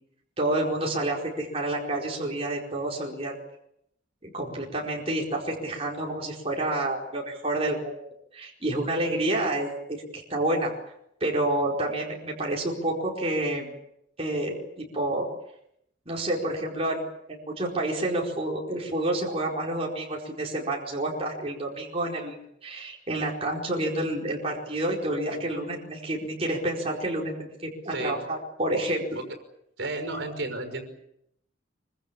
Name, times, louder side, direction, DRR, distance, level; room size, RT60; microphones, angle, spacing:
voice 1, 0.4-3.3 4.2-7.9 8.3-10.7 11.2-13.7 14.2-15.3 16.1-17.0 17.3-22.4 22.6-29.0, right 1 dB, 30° right, -2 dB, 4.7 m, -29 dB
voice 2, 25.3-25.6 27.9-28.2 29.1-29.2 29.8-30.8, right 2 dB, 65° right, 7 dB, 5.8 m, -33 dB
26.0 x 25.0 x 7.2 m, 0.76 s
head